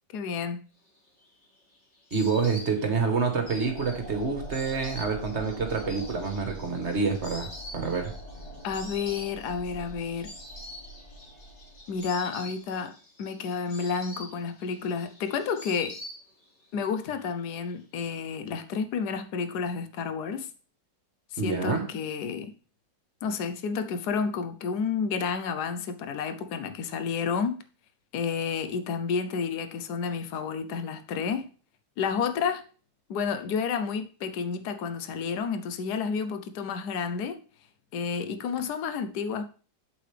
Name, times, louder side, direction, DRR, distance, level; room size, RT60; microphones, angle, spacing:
voice 1, 0.1-0.6 8.6-10.3 11.9-16.0 16.7-20.5 21.3-22.5 23.2-27.6 28.1-31.5 32.0-32.6 33.1-37.4 37.9-39.5, left 6 dB, 65° left, 9 dB, 1.3 m, -30 dB
Insect, 1.0-16.7 16.9-17.7, left 1 dB, 35° left, 2.3 m, -46 dB
voice 2, 2.1-8.1 21.4-21.8, right 5 dB, 40° right, 4 dB, 1.6 m, -27 dB
sound 1, 3.1-12.2, equal, 5° left, 3.8 m, -44 dB
8.1 x 7.7 x 3.4 m, 0.39 s
omnidirectional pair, 2.0 m